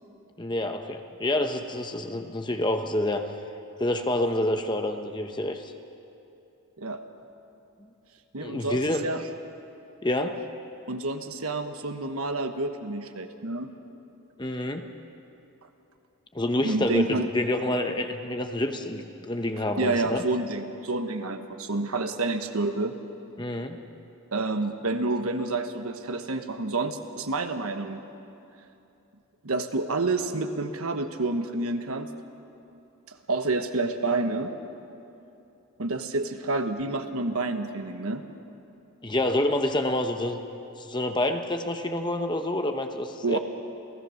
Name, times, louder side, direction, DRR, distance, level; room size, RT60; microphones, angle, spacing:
voice 1, 0.4-3.3 3.8-5.7 8.4-9.0 10.0-10.4 14.4-14.9 16.3-20.2 23.4-23.8 39.0-40.4 40.8-43.4, left 1 dB, 20° left, 6 dB, 0.9 m, -28 dB
voice 2, 8.3-9.2 10.9-13.7 16.6-17.3 19.8-23.0 24.3-28.0 29.4-32.1 33.3-34.5 35.8-38.2 43.2-43.4, right 2 dB, 75° right, 7 dB, 1.2 m, -28 dB
28.5 x 16.5 x 6.5 m, 2.9 s
head